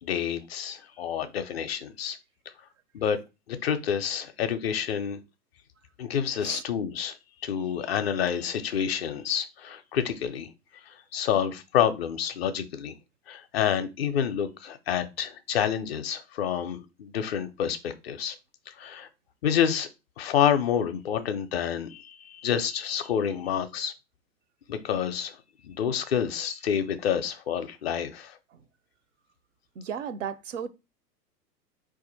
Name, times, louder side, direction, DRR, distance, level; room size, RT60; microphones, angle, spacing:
voice 1, 0.0-2.2 2.9-3.2 3.5-5.2 6.0-10.5 10.9-12.9 13.3-18.4 18.7-19.1 19.4-19.9 20.2-23.9 24.7-25.4 25.6-28.4, left 8 dB, 40° left, 0.5 m, -28 dB
voice 2, 29.8-30.7, right 7 dB, 50° right, 0.5 m, -35 dB
4.1 x 2.5 x 3.9 m
figure-of-eight pair, 100°, 49 cm